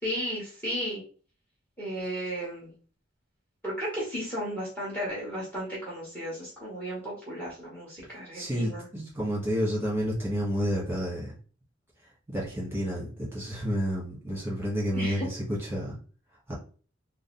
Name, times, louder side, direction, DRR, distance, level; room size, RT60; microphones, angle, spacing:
voice 1, 0.0-1.0 1.8-2.7 3.6-8.8 14.9-15.3, equal, 10° left, -5 dB, 1.3 m, -34 dB
voice 2, 8.3-11.3 12.3-16.0 16.5-16.6, equal, 10° right, -5 dB, 1.6 m, -30 dB
3.9 x 2.0 x 3.9 m, 0.40 s
head